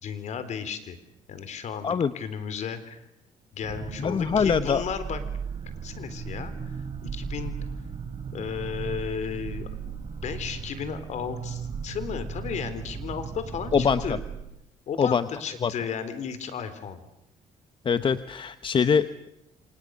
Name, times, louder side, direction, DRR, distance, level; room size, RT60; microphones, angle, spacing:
voice 1, 0.0-1.0 1.3-3.0 3.5-5.2 5.8-7.6 8.3-10.0 10.2-14.2 14.9-17.0, left 7 dB, 65° left, 11 dB, 3.8 m, -34 dB
sound 1, 3.6-14.4, right 6 dB, 45° right, 5.1 m, -36 dB
voice 2, 4.0-4.8 13.7-14.2 15.0-15.2 15.6-15.7 17.8-19.3, left 6 dB, 40° left, 12 dB, 1.1 m, -23 dB
28.5 x 27.0 x 6.5 m, 0.82 s
cardioid pair, 95°, 13 cm